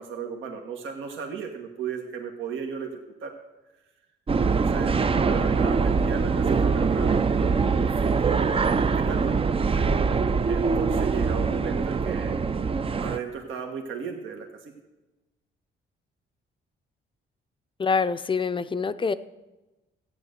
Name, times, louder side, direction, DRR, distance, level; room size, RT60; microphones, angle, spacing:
voice 1, 0.0-3.3 4.4-4.9 5.2-9.4 10.5-12.4 13.0-14.7, right 6 dB, 75° right, 2 dB, 1.5 m, -35 dB
sound 1, 4.3-13.2, right 5 dB, 30° right, 0.5 m, -23 dB
voice 2, 17.8-19.1, left 5 dB, 25° left, 12 dB, 0.6 m, -25 dB
14.0 x 9.0 x 6.7 m, 1.1 s
cardioid pair, 90°, 20 cm